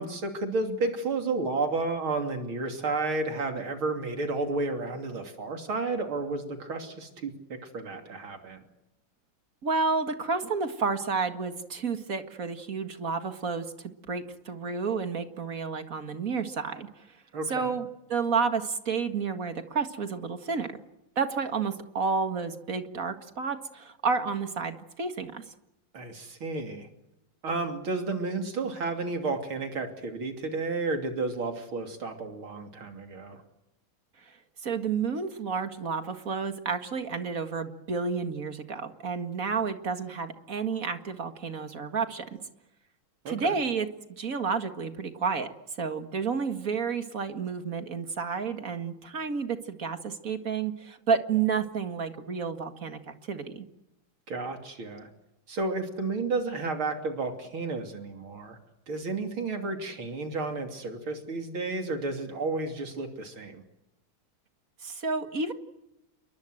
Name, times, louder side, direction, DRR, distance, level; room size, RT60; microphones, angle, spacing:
voice 1, 0.0-8.6 17.3-17.7 25.9-26.9 27.4-33.4 43.3-43.6 54.3-55.1 55.5-58.6 58.9-63.6, right 3 dB, 70° right, 5 dB, 3.7 m, -32 dB
voice 2, 9.6-17.1 17.5-20.7 21.2-25.4 34.2-34.4 34.6-42.2 43.3-45.5 45.8-53.7 64.8-65.5, right 5 dB, 40° right, 8 dB, 2.2 m, -30 dB
29.0 x 23.0 x 7.9 m, 0.91 s
omnidirectional pair, 2.3 m